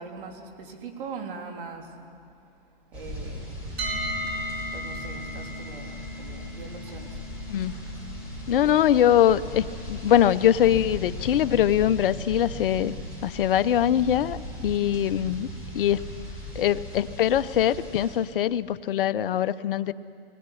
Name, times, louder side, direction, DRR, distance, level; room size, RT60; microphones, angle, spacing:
voice 1, 0.0-2.0 2.9-3.6 4.7-7.2 14.6-15.0, right 5 dB, 60° right, 3 dB, 3.5 m, -41 dB
sound 1, 2.9-18.2, equal, 5° right, 8.0 m, -38 dB
sound 2, 3.8-15.7, left 1 dB, 80° right, 4.8 m, -40 dB
voice 2, 8.5-13.0 13.2-15.5 15.7-16.0 16.5-19.9, left 10 dB, 60° left, 14 dB, 0.8 m, -22 dB
21.5 x 18.0 x 10.0 m, 2.5 s
hypercardioid pair, 145°, 30 cm